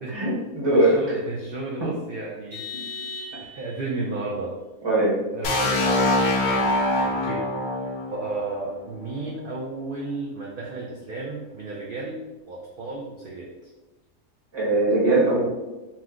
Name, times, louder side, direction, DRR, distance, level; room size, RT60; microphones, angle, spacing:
voice 1, 0.1-1.0 1.8-1.9 4.8-5.2 14.5-15.4, right 2 dB, 20° right, -6 dB, 0.9 m, -20 dB
voice 2, 0.7-3.0 3.5-4.5 5.3-6.8 7.0-7.5 8.1-12.2 12.5-13.5, right 3 dB, 75° right, -3 dB, 0.5 m, -33 dB
Vehicle horn car horn honking, 2.5-3.9, left 3 dB, 55° right, 1.1 m, -37 dB
sound 1, 5.4-9.3, left 2 dB, 80° left, 1.0 m, -24 dB
3.1 x 2.0 x 3.5 m, 1.1 s
omnidirectional pair, 1.4 m